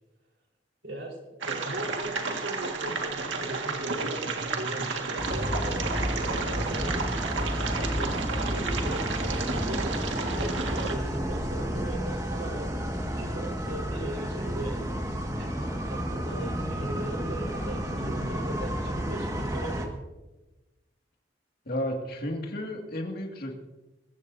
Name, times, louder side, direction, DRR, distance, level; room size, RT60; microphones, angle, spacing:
voice 1, 0.8-7.1 7.4-12.7 13.2-14.8 15.4-20.0, right 1 dB, 65° right, 0 dB, 4.5 m, -38 dB
sound 1, 1.4-11.0, right 3 dB, 80° right, 1.9 m, -32 dB
sound 2, 5.2-19.9, equal, 20° right, 1.8 m, -31 dB
voice 2, 21.7-23.5, left 1 dB, 55° left, 1 dB, 2.2 m, -32 dB
22.5 x 15.0 x 2.8 m, 1.0 s
head